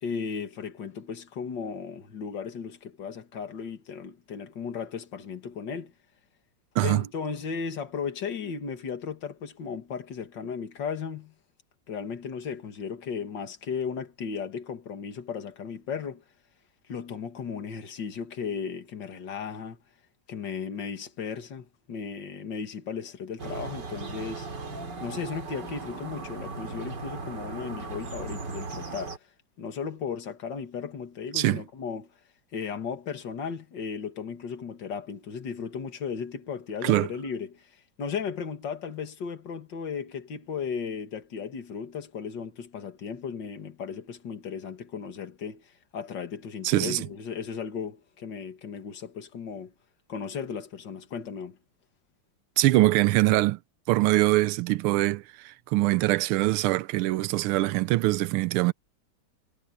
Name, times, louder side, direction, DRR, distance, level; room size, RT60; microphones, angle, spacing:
voice 1, 0.0-5.9 6.8-11.3 11.9-16.2 16.9-19.8 20.3-24.5 25.0-29.3 29.6-32.1 32.5-49.7 50.1-51.6, left 6 dB, 60° left, 2.6 m, -35 dB
sound 1, 23.4-29.2, right 4 dB, 55° right, 3.2 m, -37 dB
voice 2, 46.6-47.0 52.6-53.6 53.9-58.7, right 18 dB, 90° right, 1.5 m, -23 dB
omnidirectional pair, 2.3 m